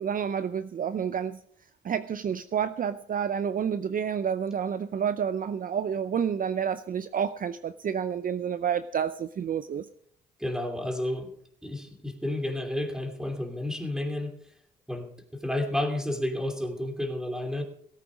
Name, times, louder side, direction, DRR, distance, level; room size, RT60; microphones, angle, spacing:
voice 1, 0.0-1.4 1.8-9.9, right 8 dB, 45° right, 12 dB, 0.6 m, -29 dB
voice 2, 10.4-11.3 11.6-14.3 14.9-17.6, left 1 dB, 5° right, 3 dB, 2.8 m, -31 dB
18.0 x 8.6 x 5.1 m, 0.66 s
cardioid pair, 90°, 20 cm